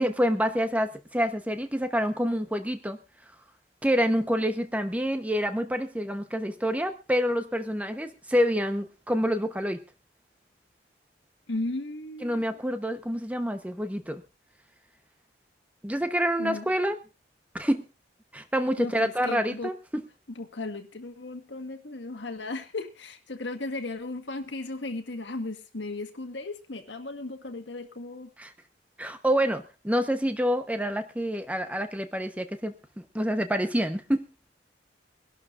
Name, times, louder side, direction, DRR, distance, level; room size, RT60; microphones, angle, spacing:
voice 1, 0.0-3.0 3.8-9.8 12.2-14.2 15.8-17.0 17.5-17.9 18.3-20.0 28.4-28.5 29.0-34.3, equal, 10° right, 8 dB, 0.9 m, -27 dB
voice 2, 11.5-12.4 16.4-16.7 18.8-19.7 20.4-28.3, left 2 dB, 75° left, 5 dB, 1.7 m, -36 dB
23.5 x 11.5 x 2.5 m, 0.29 s
head